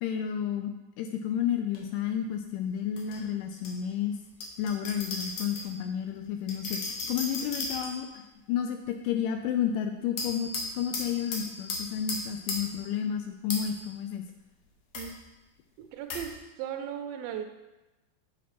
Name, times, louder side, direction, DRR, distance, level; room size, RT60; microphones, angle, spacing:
voice 1, 0.0-0.7 1.0-4.2 4.6-6.8 7.1-8.2 8.5-14.2, left 9 dB, 90° left, 5 dB, 1.8 m, -31 dB
sound 1, 1.7-1.8 3.0-3.7 4.4-5.7 6.5-8.2 10.2-12.8 13.5-13.9 14.9-15.1 16.1-16.3, left 3 dB, 70° left, 1.7 m, -36 dB
voice 2, 15.9-16.3 16.6-17.4, right 9 dB, 80° right, 6 dB, 2.4 m, -36 dB
7.3 x 5.9 x 4.2 m, 1.1 s
omnidirectional pair, 4.3 m